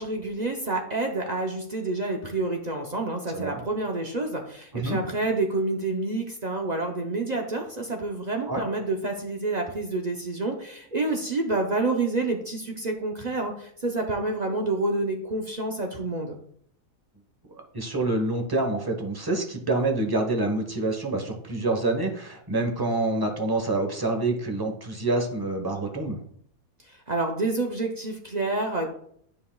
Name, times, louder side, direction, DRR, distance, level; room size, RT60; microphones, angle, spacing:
voice 1, 0.0-16.4 26.9-28.9, right 2 dB, 45° right, 1 dB, 0.6 m, -28 dB
voice 2, 17.7-26.2, right 2 dB, 20° right, 3 dB, 0.8 m, -27 dB
9.6 x 5.4 x 2.3 m, 0.65 s
omnidirectional pair, 1.5 m